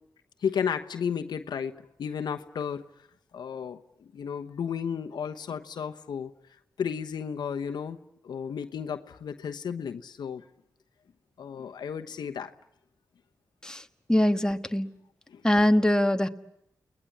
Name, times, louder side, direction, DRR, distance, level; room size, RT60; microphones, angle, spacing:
voice 1, 0.4-2.8 3.3-6.3 6.8-8.0 8.2-10.4 11.4-12.5 15.3-15.4, left 7 dB, 85° left, 7 dB, 1.1 m, -33 dB
voice 2, 13.6-14.9 15.4-16.3, left 1 dB, 10° left, 7 dB, 1.5 m, -23 dB
29.5 x 20.0 x 8.6 m, 0.80 s
cardioid pair, 50°, 7 cm